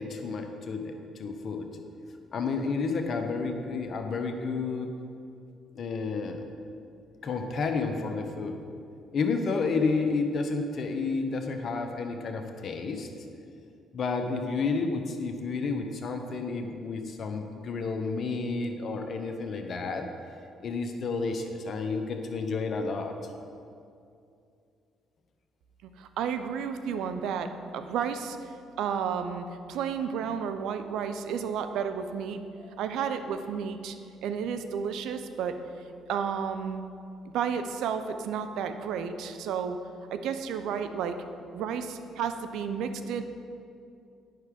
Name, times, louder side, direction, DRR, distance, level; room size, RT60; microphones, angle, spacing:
voice 1, 0.0-1.7 2.3-4.9 5.7-6.4 7.2-8.6 9.1-13.1 13.9-20.1 20.6-23.1 32.6-32.7, left 4 dB, 55° left, 5 dB, 1.0 m, -31 dB
voice 2, 26.0-27.5 27.7-28.4 28.8-32.4 32.8-34.0 34.2-35.5 36.1-36.8 37.3-39.8 40.1-41.2 41.5-43.2, right 7 dB, 75° right, 8 dB, 0.5 m, -32 dB
9.4 x 5.9 x 5.0 m, 2.5 s
hypercardioid pair, 60°, 0 cm